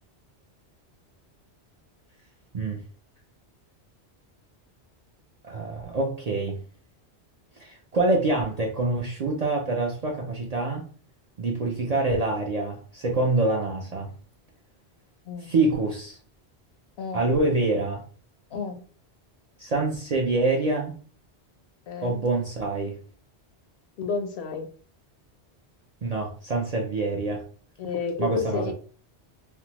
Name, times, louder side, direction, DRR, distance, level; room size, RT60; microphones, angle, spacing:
voice 1, 5.4-6.6 7.6-10.9 11.4-14.1 15.4-16.2 17.1-18.0 19.6-20.9 22.0-23.0 26.0-27.4 28.2-28.7, right 2 dB, 50° right, -1 dB, 0.4 m, -26 dB
voice 2, 21.9-22.2 24.0-24.7 27.8-28.7, left 5 dB, 70° left, 6 dB, 0.8 m, -31 dB
3.3 x 2.0 x 2.9 m, 0.42 s
omnidirectional pair, 1.1 m